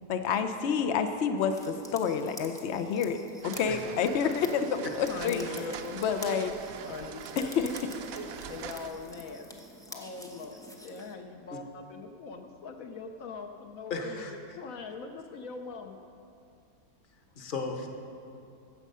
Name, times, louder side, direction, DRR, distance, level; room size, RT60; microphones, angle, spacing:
voice 1, 0.1-5.4 5.9-6.5 7.4-7.7, left 6 dB, 85° left, 7 dB, 0.6 m, -29 dB
sound 1, 1.5-11.1, equal, 5° left, 0.3 m, -48 dB
sound 2, 3.4-8.9, right 7 dB, 65° right, 0.9 m, -42 dB
voice 2, 5.1-6.0 6.8-7.7 8.5-9.5 9.9-10.6 10.8-14.2 14.6-16.0, left 5 dB, 65° left, 5 dB, 0.9 m, -41 dB
voice 3, 13.9-14.3 17.4-17.9, left 4 dB, 40° left, 4 dB, 0.9 m, -35 dB
15.5 x 7.2 x 5.5 m, 2.7 s
omnidirectional pair, 1.8 m